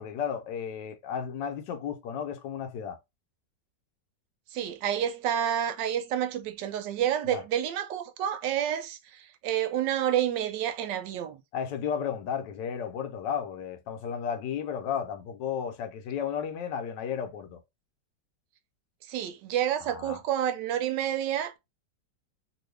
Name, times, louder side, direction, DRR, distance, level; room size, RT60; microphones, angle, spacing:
voice 1, 0.0-3.0 7.3-7.4 11.5-17.6 19.9-20.2, left 8 dB, 85° left, 1.3 m, -33 dB
voice 2, 4.5-11.4 19.1-21.6, right 10 dB, 85° right, 1.3 m, -29 dB
3.0 x 2.6 x 3.2 m
omnidirectional pair, 1.9 m